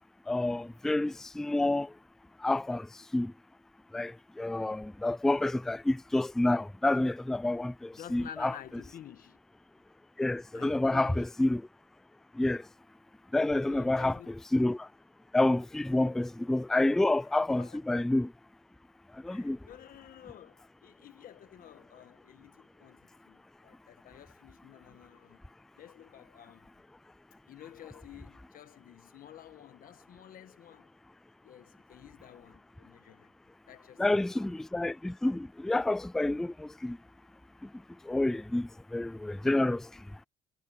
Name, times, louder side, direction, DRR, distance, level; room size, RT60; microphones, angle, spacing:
voice 1, 0.3-1.9 2.4-3.3 3.9-8.5 10.2-11.6 12.3-12.7 13.3-14.9 15.3-18.3 19.1-19.6 34.0-37.0 37.6-37.7 38.0-40.0, left 2 dB, 5° left, 0.3 m, -29 dB
voice 2, 7.9-9.4 10.5-11.3 13.5-14.3 16.7-16.8 17.2-17.3 17.6-17.8 19.3-25.4 25.8-26.7 27.5-30.9 31.4-33.3 33.7-34.4, left 11 dB, 55° left, 1.5 m, -51 dB
cardioid pair, 110°, 17 cm